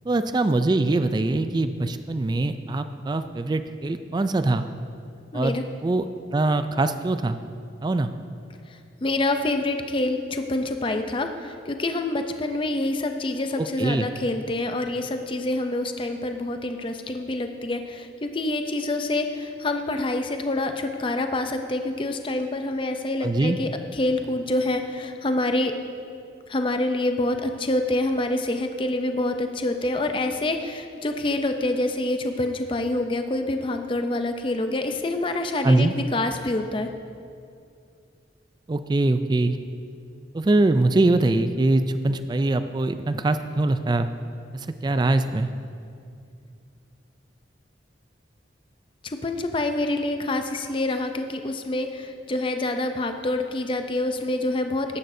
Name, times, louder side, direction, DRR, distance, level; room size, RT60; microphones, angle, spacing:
voice 1, 0.1-4.7 5.3-6.1 6.3-7.4 7.8-8.1 13.6-14.1 23.2-23.6 35.6-35.9 38.7-39.6 40.3-44.1 44.5-45.5, right 2 dB, 25° right, 10 dB, 0.3 m, -23 dB
voice 2, 5.3-5.6 9.0-25.7 26.5-36.9 49.0-55.0, left 2 dB, 30° left, 6 dB, 0.5 m, -26 dB
14.0 x 11.0 x 2.7 m, 2.4 s
head